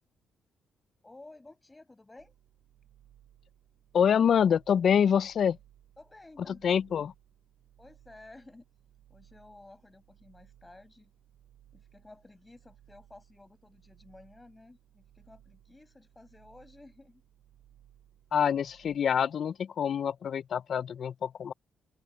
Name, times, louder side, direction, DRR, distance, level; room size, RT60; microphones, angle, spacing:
voice 1, 1.0-2.3 6.0-6.9 7.8-8.7 9.1-11.1 11.7-17.2, left 2 dB, 15° left, 7.1 m, -54 dB
sound 1, 2.2-19.0, right 11 dB, 80° right, 5.6 m, -61 dB
voice 2, 3.9-5.6 6.5-7.1 18.3-21.5, left 8 dB, 55° left, 0.4 m, -26 dB
open air
cardioid pair, 90°, 0 cm